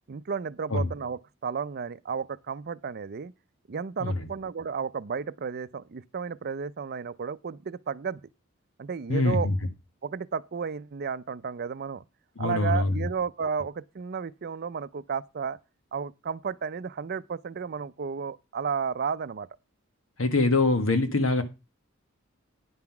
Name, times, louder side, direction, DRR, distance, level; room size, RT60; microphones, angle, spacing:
voice 1, 0.1-3.3 3.7-8.2 8.8-9.5 10.0-12.0 12.4-15.6 15.9-19.5, right 6 dB, 50° right, 0.5 m, -33 dB
voice 2, 9.1-9.6 12.4-13.1 20.2-21.4, left 2 dB, 90° left, 1.5 m, -24 dB
9.7 x 5.8 x 5.9 m
head